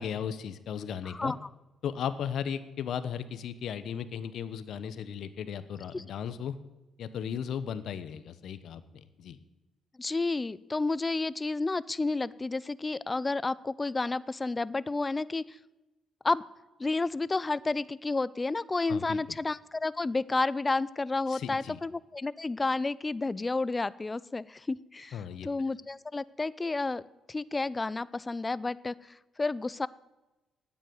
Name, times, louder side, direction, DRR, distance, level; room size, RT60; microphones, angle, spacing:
voice 1, 0.0-1.3 1.8-6.6 7.0-9.4 18.9-19.4 21.3-21.8 25.1-25.5, left 8 dB, 70° left, 13 dB, 0.9 m, -36 dB
voice 2, 1.1-1.4 5.9-6.0 10.0-15.6 16.2-16.4 16.8-27.0 27.3-29.9, left 3 dB, 20° left, 20 dB, 0.4 m, -31 dB
9.4 x 8.8 x 9.4 m, 1.1 s
cardioid pair, 90°, 0 cm